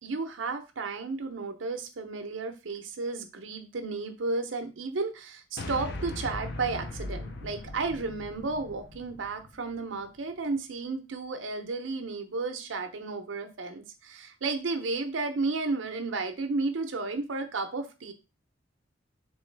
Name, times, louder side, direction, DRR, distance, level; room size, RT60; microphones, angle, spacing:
voice 1, 0.0-18.1, right 3 dB, 85° right, 6 dB, 0.7 m, -33 dB
sound 1, 5.6-10.0, left 2 dB, 60° left, 0.5 m, -39 dB
3.7 x 3.0 x 3.2 m, 0.30 s
head